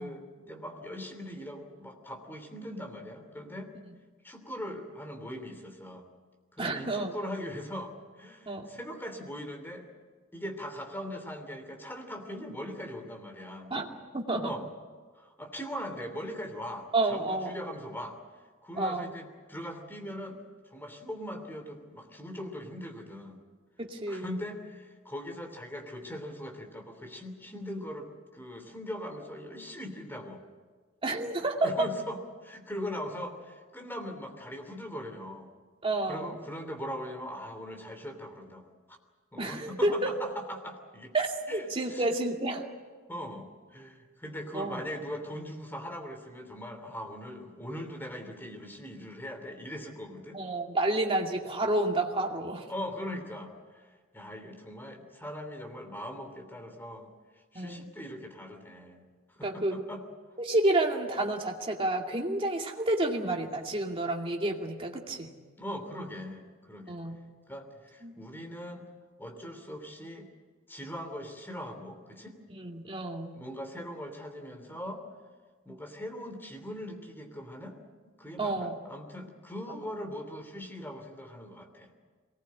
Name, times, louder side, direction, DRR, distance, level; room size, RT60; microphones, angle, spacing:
voice 1, 0.0-3.7 4.2-6.1 6.5-9.9 10.3-13.7 14.4-14.7 15.1-18.2 18.6-20.4 20.7-23.4 24.1-30.5 31.6-35.5 36.0-38.7 39.3-41.1 41.5-42.0 43.1-50.4 52.7-57.1 57.5-59.1 59.4-60.0 65.6-67.0 67.5-68.9 69.2-70.3 70.7-72.4 73.3-75.0 75.6-77.8 78.2-81.9, equal, 10° left, 5 dB, 3.1 m, -40 dB
voice 2, 6.6-7.1 8.5-8.7 13.7-13.9 14.1-14.5 16.9-17.6 18.8-19.1 23.8-24.3 31.0-31.9 35.8-36.4 39.4-40.1 41.1-42.6 44.5-44.8 50.3-52.7 57.5-57.9 59.4-59.8 60.4-65.3 66.9-67.2 68.0-68.1 72.5-73.4 78.4-78.8, right 2 dB, 25° right, 1 dB, 2.4 m, -30 dB
23.5 x 19.0 x 8.7 m, 1.4 s
head